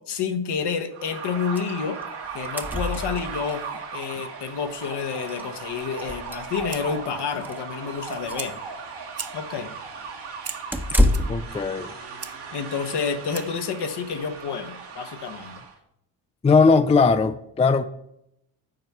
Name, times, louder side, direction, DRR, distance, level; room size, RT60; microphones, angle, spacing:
voice 1, 0.0-2.0 2.3-3.6 3.9-8.6 9.3-9.7 12.5-15.6, left 6 dB, 60° left, 7 dB, 1.1 m, -29 dB
sound 1, 0.9-15.7, right 5 dB, 65° right, 1.9 m, -37 dB
sound 2, 1.6-1.7 2.0-2.1 2.3-3.6 4.8-4.9 5.3-5.4 5.9-6.9 7.3-7.6 8.0-8.6 10.7-11.5, left 1 dB, 5° right, 0.9 m, -26 dB
Fire, 6.2-13.7, right 7 dB, 35° right, 0.7 m, -43 dB
voice 2, 11.3-11.9 16.4-17.8, left 4 dB, 15° left, 11 dB, 0.4 m, -19 dB
7.8 x 4.5 x 5.6 m, 0.77 s
supercardioid pair, 60°, 45 cm